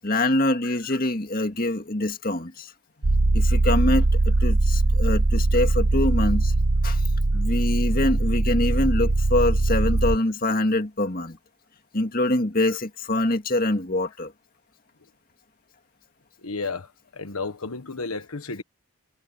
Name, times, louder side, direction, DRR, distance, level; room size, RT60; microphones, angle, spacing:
voice 1, 0.0-2.7 3.3-6.5 6.8-7.0 7.3-11.4 11.9-14.3, left 1 dB, 40° left, 2.2 m, -24 dB
voice 2, 0.6-1.0 12.7-12.8 16.4-18.6, left 3 dB, 80° left, 1.4 m, -33 dB
sound 1, 3.0-10.2, right 2 dB, 65° right, 1.0 m, -21 dB
head